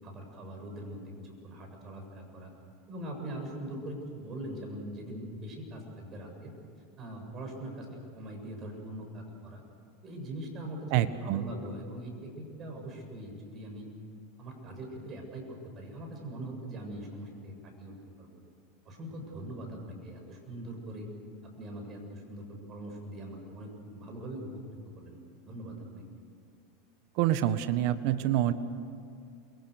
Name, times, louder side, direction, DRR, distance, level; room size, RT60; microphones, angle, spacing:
voice 1, 0.0-2.5 2.9-6.5 7.0-9.6 10.0-13.9 14.4-18.4 18.8-21.1 21.4-25.2 25.5-26.0, right 1 dB, 35° right, 3 dB, 7.5 m, -42 dB
voice 2, 10.9-11.4 27.2-28.5, right 12 dB, 60° right, 12 dB, 1.4 m, -26 dB
28.5 x 23.0 x 6.6 m, 2.4 s
supercardioid pair, 115°, 0 cm